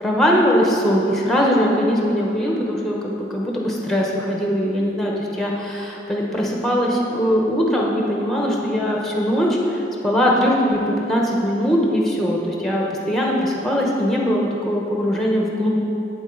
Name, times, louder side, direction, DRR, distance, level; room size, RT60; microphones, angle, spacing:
voice 1, 0.0-15.8, equal, ahead, -2 dB, 1.0 m, -21 dB
8.7 x 7.3 x 3.9 m, 2.9 s
head